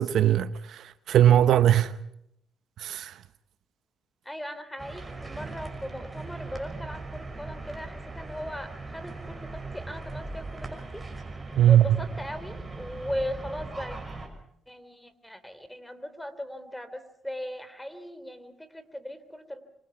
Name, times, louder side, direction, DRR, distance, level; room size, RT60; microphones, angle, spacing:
voice 1, 0.0-2.0 2.8-3.2 11.6-11.9, right 11 dB, 75° right, 0.8 m, -20 dB
voice 2, 4.2-11.0 11.7-14.0 14.7-19.6, equal, 5° left, 3.0 m, -38 dB
sound 1, 4.8-14.3, right 3 dB, 15° right, 5.7 m, -39 dB
27.0 x 25.0 x 5.8 m
cardioid pair, 90°, 0 cm